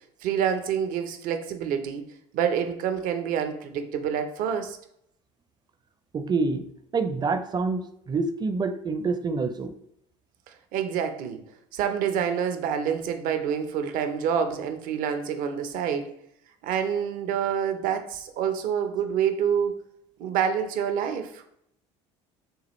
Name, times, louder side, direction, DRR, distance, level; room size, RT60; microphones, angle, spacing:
voice 1, 0.2-2.1 2.3-4.8 10.5-11.4 11.7-16.2 16.6-19.8 20.2-21.4, right 8 dB, 65° right, 0.7 m, -27 dB
voice 2, 6.1-6.6 6.9-9.7, right 4 dB, 30° right, 0.5 m, -27 dB
6.3 x 2.4 x 3.0 m
hypercardioid pair, 80°, 15 cm